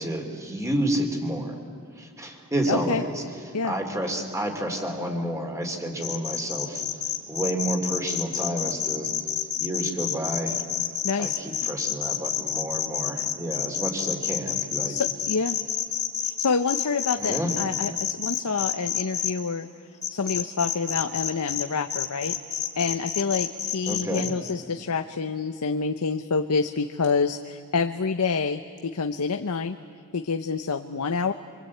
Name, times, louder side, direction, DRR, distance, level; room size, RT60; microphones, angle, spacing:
voice 1, 0.0-1.5 2.0-3.2 3.6-6.8 7.3-9.1 9.6-10.6 11.2-15.0 17.2-17.5 23.9-24.3, right 1 dB, 15° right, 3 dB, 3.1 m, -30 dB
voice 2, 2.7-3.0 3.5-3.7 11.0-11.4 14.9-15.6 16.2-19.7 20.1-22.3 22.8-29.8 30.1-31.3, left 5 dB, 85° left, 6 dB, 0.8 m, -27 dB
sound 1, 6.0-19.3 20.0-21.6 21.9-24.5, left 9 dB, 35° left, 2.7 m, -28 dB
25.0 x 24.5 x 8.5 m, 2.1 s
head